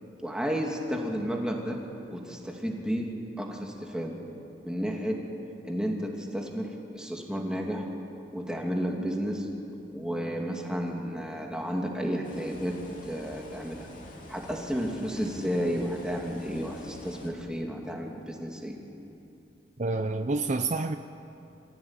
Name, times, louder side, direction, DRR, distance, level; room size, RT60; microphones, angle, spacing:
voice 1, 0.2-1.8 2.1-3.1 3.4-4.2 4.6-5.2 5.6-7.9 8.3-9.5 9.9-12.8 13.1-13.9 14.3-18.8, equal, 5° right, 0 dB, 2.5 m, -32 dB
sound 1, 12.2-17.3, left 1 dB, 50° left, 2.9 m, -47 dB
voice 2, 19.8-20.9, right 3 dB, 45° right, 8 dB, 0.6 m, -28 dB
25.0 x 16.0 x 8.9 m, 2.7 s
head